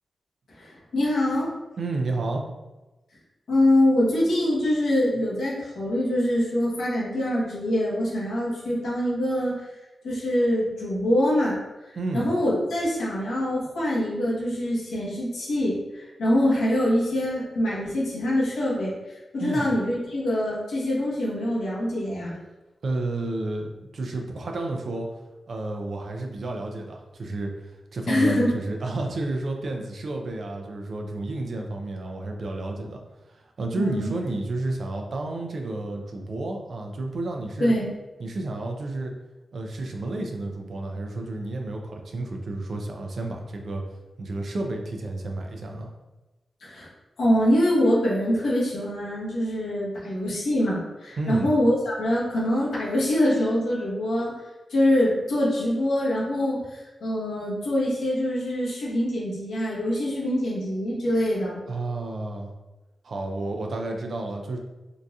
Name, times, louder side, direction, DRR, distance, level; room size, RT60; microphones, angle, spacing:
voice 1, 0.6-1.5 3.5-9.7 10.0-11.5 12.1-22.3 28.1-28.5 33.8-34.1 37.6-37.9 46.6-46.9 47.2-54.3 54.7-61.6, left 1 dB, 85° left, -6 dB, 1.1 m, -24 dB
voice 2, 1.8-2.4 12.0-12.3 19.4-19.7 22.8-25.1 25.5-33.0 33.3-37.7 38.2-39.1 39.5-43.8 44.2-45.9 51.2-51.5 61.7-62.5 63.0-64.6, right 2 dB, 70° right, 2 dB, 0.5 m, -31 dB
3.8 x 2.6 x 2.3 m, 1.1 s
cardioid pair, 45°, 0 cm